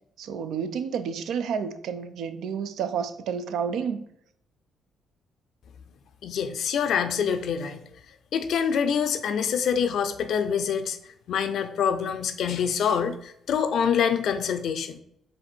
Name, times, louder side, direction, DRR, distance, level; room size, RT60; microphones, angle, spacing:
voice 1, 0.2-4.0, right 7 dB, 80° right, 0.4 m, -30 dB
voice 2, 6.2-7.8 8.3-11.0 11.3-15.0, left 7 dB, 70° left, 0.4 m, -25 dB
4.1 x 2.6 x 4.3 m
cardioid pair, 90°, 0 cm